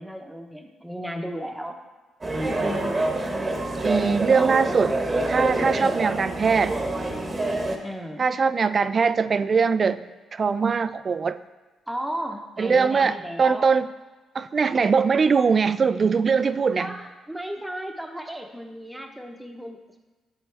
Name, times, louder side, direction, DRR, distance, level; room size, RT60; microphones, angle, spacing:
voice 1, 0.0-1.8 2.5-3.2 5.7-6.0 7.8-8.2 11.9-13.7 16.8-20.0, equal, 5° right, 4 dB, 0.9 m, -35 dB
sound 1, 2.2-7.8, right 2 dB, 25° right, 1.0 m, -26 dB
voice 2, 3.8-5.0 5.3-6.8 8.2-10.0 10.3-11.4 12.6-13.9 14.3-16.9, right 5 dB, 40° right, 13 dB, 0.3 m, -21 dB
11.0 x 4.0 x 3.4 m, 1.2 s
cardioid pair, 90°, 0 cm